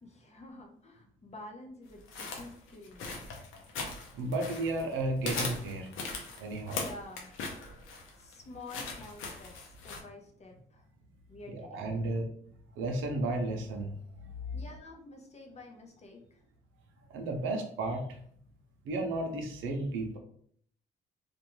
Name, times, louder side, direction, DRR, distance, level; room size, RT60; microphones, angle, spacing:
voice 1, 0.0-3.3 6.7-7.3 8.2-10.9 11.3-12.0 14.5-16.4, left 2 dB, 35° left, 2 dB, 0.7 m, -49 dB
sound 1, 2.1-4.9 5.2-10.0, left 3 dB, 85° left, 0.7 m, -39 dB
voice 2, 4.1-5.9 6.4-6.8 11.5-12.2 12.7-13.9 14.2-14.6 17.1-18.2 18.8-20.2, right 2 dB, 85° right, 3 dB, 0.6 m, -33 dB
2.6 x 2.2 x 2.9 m, 0.62 s
cardioid pair, 90°, 20 cm